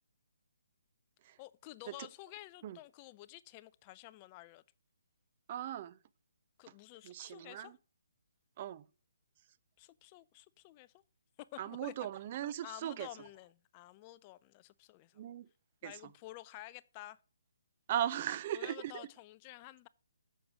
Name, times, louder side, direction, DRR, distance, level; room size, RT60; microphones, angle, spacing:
voice 1, 1.4-4.6 6.6-7.8 9.8-11.0 11.4-11.9 12.6-15.2 15.8-17.2 18.5-19.9, left 17 dB, 25° left, 0.4 m, -51 dB
voice 2, 5.5-6.0 7.0-7.7 8.6-8.8 11.6-13.1 15.2-15.5 15.8-15.9 17.9-19.1, right 11 dB, 35° right, 0.5 m, -38 dB
7.8 x 6.3 x 6.1 m
hypercardioid pair, 150°, 0 cm